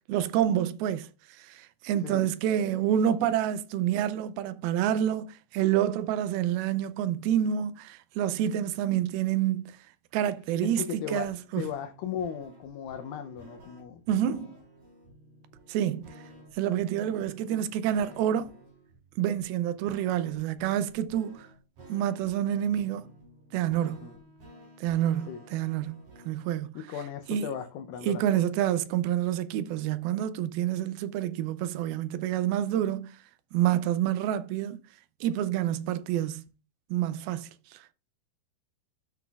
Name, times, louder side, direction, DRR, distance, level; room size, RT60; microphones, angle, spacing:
voice 1, 0.1-9.7 10.1-11.7 14.1-14.6 15.7-16.1 16.5-18.5 19.2-21.5 21.9-23.1 23.5-24.1 24.8-26.7 27.3-27.5 28.0-33.1 33.5-34.8 35.2-36.4 36.9-37.9, right 11 dB, 80° right, 2.4 m, -28 dB
voice 2, 10.6-14.4 23.8-24.2 25.3-25.4 26.8-28.4, left 8 dB, 80° left, 2.2 m, -37 dB
sound 1, 11.2-26.5, right 1 dB, 55° right, 4.9 m, -53 dB
13.5 x 5.9 x 2.3 m
omnidirectional pair, 4.5 m